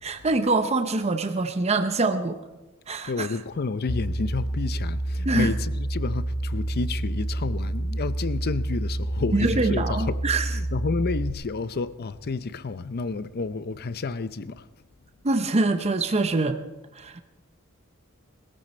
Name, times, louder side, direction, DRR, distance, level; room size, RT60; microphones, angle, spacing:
voice 1, 0.0-2.4 2.9-3.3 5.2-5.5 9.3-10.5 15.2-16.6 16.9-17.2, right 3 dB, 30° right, 0.7 m, -24 dB
voice 2, 3.1-10.2 10.5-14.7, left 4 dB, 45° left, 0.5 m, -30 dB
sound 1, 3.9-11.3, right 1 dB, 25° left, 1.0 m, -28 dB
20.5 x 14.0 x 4.3 m
head